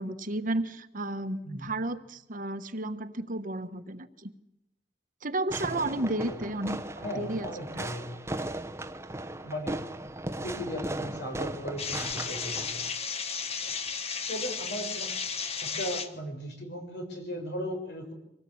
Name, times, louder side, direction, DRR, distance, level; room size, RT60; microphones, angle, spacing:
voice 1, 0.0-4.3 5.2-7.5 7.7-7.9, right 2 dB, 50° right, 9 dB, 1.4 m, -33 dB
Fireworks, 5.5-12.9, right 1 dB, 15° right, 1.1 m, -37 dB
voice 2, 5.7-6.4 7.0-8.2 9.4-9.8 10.4-12.8 14.3-15.1 15.6-18.1, equal, 65° left, 4 dB, 6.3 m, -37 dB
sound 1, 11.8-16.1, left 5 dB, 35° left, 1.5 m, -34 dB
25.5 x 18.5 x 8.7 m, 0.83 s
head